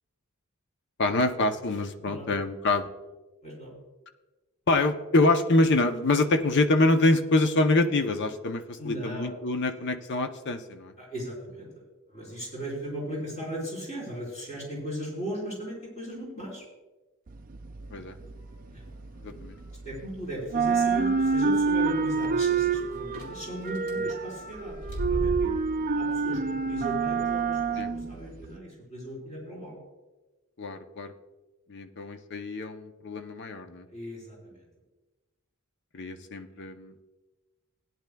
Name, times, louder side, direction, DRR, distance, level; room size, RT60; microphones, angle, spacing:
voice 1, 1.0-2.9 4.7-10.9 17.9-18.1 19.2-19.6 24.0-24.1 27.8-27.9 30.6-31.1 31.7-33.9 35.9-36.9, left 2 dB, 55° left, 8 dB, 0.7 m, -25 dB
voice 2, 2.0-2.3 3.4-3.8 8.8-9.3 11.0-11.7 12.1-16.7 18.7-18.8 19.8-25.5 26.0-29.8 33.9-34.7, equal, 35° left, -3 dB, 4.2 m, -37 dB
sound 1, 17.3-20.1 20.4-28.6, right 5 dB, 40° right, 0.4 m, -27 dB
sound 2, 19.3-19.6 20.3-20.4 20.6-20.7 21.1-21.2 23.1-23.3 23.6-23.9 24.5-25.9, right 1 dB, 85° left, 2.5 m, -34 dB
17.0 x 10.5 x 2.3 m, 1.2 s
head